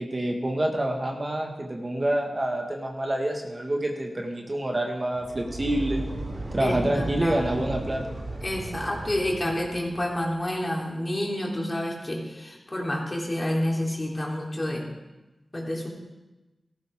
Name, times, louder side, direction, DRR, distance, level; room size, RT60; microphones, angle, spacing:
voice 1, 0.0-6.0 6.5-8.1, right 1 dB, 35° right, 1 dB, 1.8 m, -27 dB
sound 1, 5.1-10.3, right 2 dB, 55° right, 2.5 m, -35 dB
voice 2, 6.6-7.4 8.4-14.9 15.5-15.9, left 1 dB, 30° left, -2 dB, 3.6 m, -29 dB
17.0 x 14.5 x 3.7 m, 1.1 s
wide cardioid pair, 65°, 0 cm